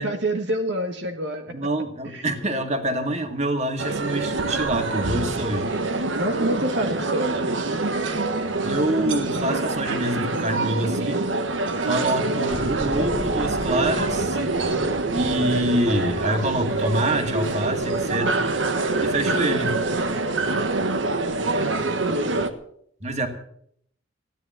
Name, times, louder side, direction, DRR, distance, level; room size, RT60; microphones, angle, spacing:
voice 1, 0.0-1.7 2.0-2.3 6.2-7.7 21.5-22.5, right 1 dB, 65° right, 1.4 m, -28 dB
voice 2, 1.5-5.7 8.6-11.3 11.8-14.4 15.1-18.5 19.0-19.8 23.0-23.3, right 1 dB, 35° right, 2.1 m, -26 dB
sound 1, 3.8-22.5, right 3 dB, 80° right, 1.4 m, -25 dB
sound 2, 12.5-21.5, equal, 5° right, 1.4 m, -39 dB
16.0 x 10.5 x 7.7 m
head